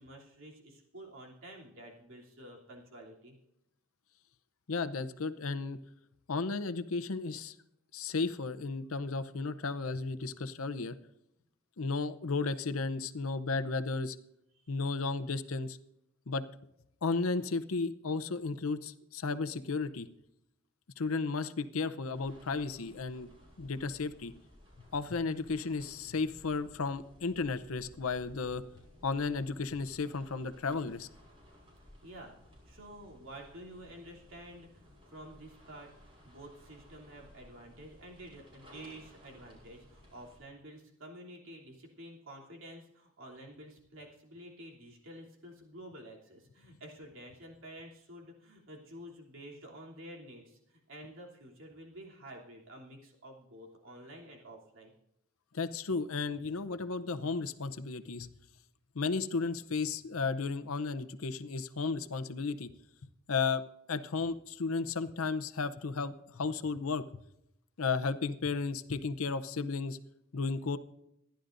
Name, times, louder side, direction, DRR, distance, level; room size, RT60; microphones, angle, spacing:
voice 1, 0.0-3.4 14.5-14.8 32.0-54.9, right 1 dB, 70° right, -2 dB, 3.1 m, -50 dB
voice 2, 4.7-5.8 6.3-7.5 7.9-10.9 11.8-14.2 14.7-15.8 16.3-16.4 17.0-20.1 21.0-23.3 23.6-24.3 24.9-28.6 29.0-31.1 55.5-58.3 58.9-62.7 63.3-63.6 63.9-67.2 67.8-70.0 70.3-70.8, left 4 dB, 80° left, 11 dB, 0.7 m, -34 dB
sound 1, 22.1-40.4, left 1 dB, 25° right, 5.6 m, -58 dB
26.5 x 11.5 x 2.6 m, 0.82 s
head